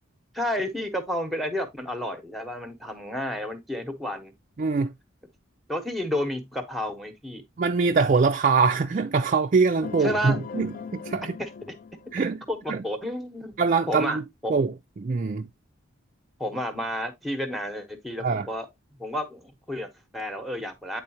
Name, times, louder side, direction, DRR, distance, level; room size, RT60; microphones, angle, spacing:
voice 1, 0.3-4.3 5.7-7.4 10.0-10.7 11.4-11.5 12.5-13.5 13.9-14.6 16.4-18.7 19.0-21.0, equal, ahead, 0.9 m, -31 dB
voice 2, 4.6-4.9 7.6-11.4 12.1-12.4 12.7-12.8 13.6-14.2 14.5-15.5 18.2-18.5, right 4 dB, 40° right, 0.3 m, -23 dB
sound 1, 9.8-12.6, left 5 dB, 40° left, 0.3 m, -38 dB
8.8 x 3.9 x 2.8 m
head